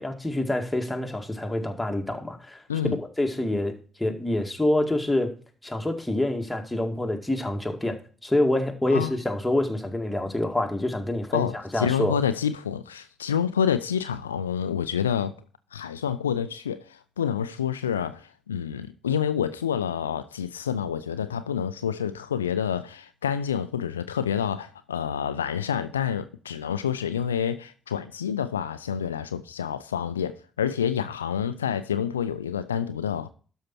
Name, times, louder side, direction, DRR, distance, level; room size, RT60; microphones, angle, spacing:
voice 1, 0.0-2.6 3.0-5.3 5.6-12.2, left 1 dB, 10° left, 2.1 m, -27 dB
voice 2, 11.3-15.3 15.7-33.3, left 8 dB, 85° left, 0.4 m, -28 dB
12.5 x 5.7 x 4.4 m
figure-of-eight pair, 45°, 0 cm